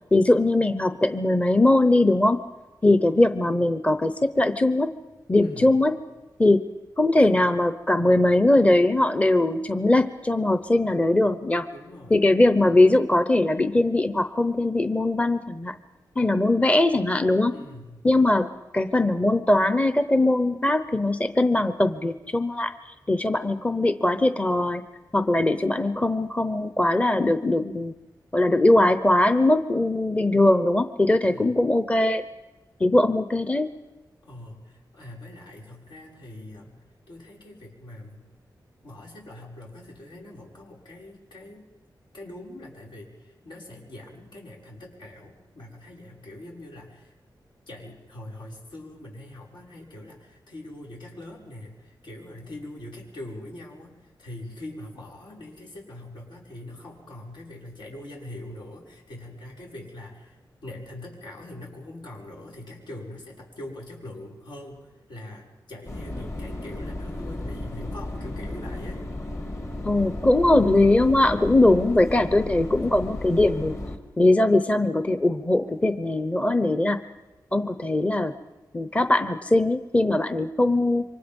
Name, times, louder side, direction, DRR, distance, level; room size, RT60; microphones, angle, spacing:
voice 1, 0.1-2.4 2.8-4.9 5.3-6.0 6.4-6.6 7.0-11.7 12.1-15.7 16.2-17.5 18.0-22.7 23.1-24.8 25.1-27.9 28.3-32.2 32.8-33.7 69.8-73.8 74.2-77.0 77.5-78.3 78.7-81.0, left 2 dB, 15° left, 11 dB, 0.8 m, -21 dB
voice 2, 5.4-5.8 11.7-12.2 17.5-18.0 31.2-31.6 34.2-38.2 38.8-41.6 42.1-47.1 47.7-69.0, left 1 dB, 80° left, -2 dB, 6.1 m, -42 dB
sound 1, 65.9-74.0, left 1 dB, 40° left, 2.4 m, -34 dB
28.0 x 24.5 x 5.4 m, 1.1 s
wide cardioid pair, 125°, 8 cm